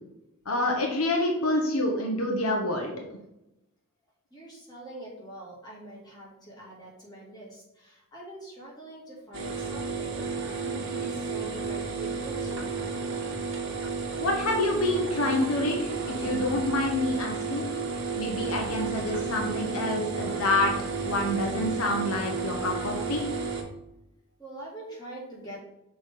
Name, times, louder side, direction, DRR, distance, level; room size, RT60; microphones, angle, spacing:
voice 1, 0.5-2.9 14.2-17.7 18.2-20.7 21.0-23.2, left 1 dB, 75° left, 1 dB, 1.0 m, -27 dB
voice 2, 4.3-12.7 24.4-25.6, right 1 dB, 20° left, -5 dB, 2.3 m, -44 dB
sound 1, 9.3-23.6, right 4 dB, 60° right, 1.2 m, -32 dB
6.1 x 3.4 x 5.1 m, 0.92 s
head